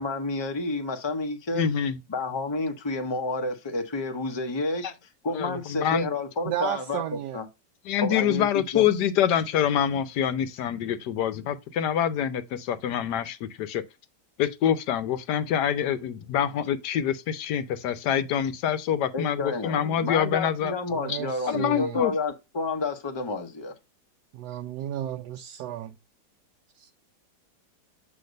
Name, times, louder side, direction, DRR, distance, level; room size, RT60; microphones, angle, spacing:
voice 1, 0.0-1.6 2.1-4.9 5.2-7.4 8.0-8.8 19.1-23.7, left 3 dB, 20° left, 0.7 m, -30 dB
voice 2, 1.5-2.0 4.8-4.9 5.3-6.1 7.9-13.8 14.4-20.7 21.5-22.1, left 9 dB, 70° left, 1.3 m, -26 dB
voice 3, 6.4-7.4 20.9-22.0 24.3-26.0 26.7-26.9, right 12 dB, 75° right, 1.1 m, -33 dB
7.9 x 3.1 x 5.2 m
omnidirectional pair, 1.9 m